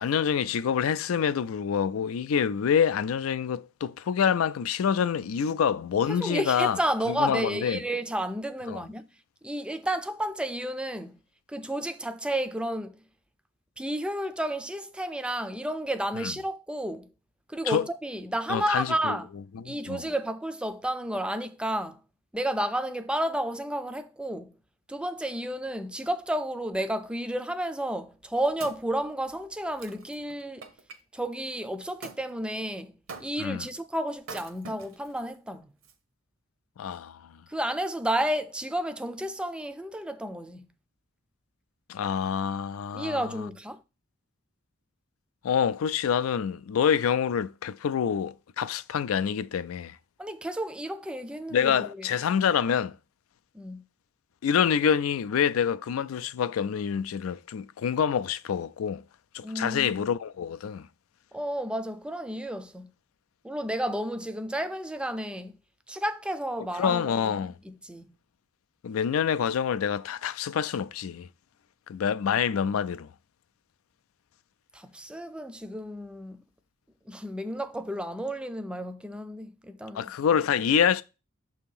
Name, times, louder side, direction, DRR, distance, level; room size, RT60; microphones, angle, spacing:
voice 1, 0.0-6.8 7.1-7.8 8.7-8.8 16.2-16.3 17.7-17.9 18.5-19.2 19.6-20.0 33.4-33.7 36.8-37.3 41.9-43.3 45.4-50.0 51.5-53.0 54.4-59.0 59.3-60.9 66.8-67.5 68.8-71.3 71.9-73.1 79.9-81.0, left 7 dB, 90° left, 0.4 m, -26 dB
voice 2, 6.1-9.0 9.4-11.2 11.5-13.0 13.8-17.1 17.5-19.3 19.6-22.0 22.3-24.5 24.9-30.7 31.1-35.7 37.5-40.7 42.9-43.8 50.2-52.1 53.5-53.8 59.4-60.0 61.3-62.9 63.4-65.6 65.9-68.2 74.7-76.4 77.1-80.1, right 1 dB, 5° right, 0.4 m, -32 dB
Wood, 28.0-31.0 32.0-32.2 33.1-33.6 34.2-35.2 35.8-35.9, right 4 dB, 70° right, 0.8 m, -45 dB
6.8 x 2.8 x 5.4 m
head